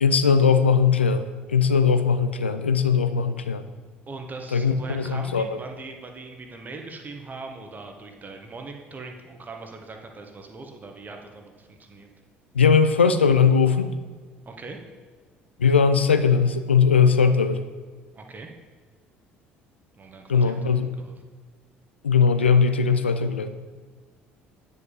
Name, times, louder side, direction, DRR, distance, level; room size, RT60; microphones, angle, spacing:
voice 1, 0.0-3.6 4.5-5.5 12.5-13.9 15.6-17.6 20.3-20.9 22.0-23.5, left 6 dB, 80° left, 10 dB, 0.4 m, -19 dB
voice 2, 4.1-12.1 14.4-14.8 18.1-18.5 20.0-21.1 22.3-22.5, right 3 dB, 30° right, 4 dB, 1.1 m, -40 dB
9.3 x 5.3 x 3.8 m, 1.5 s
figure-of-eight pair, 55°, 6 cm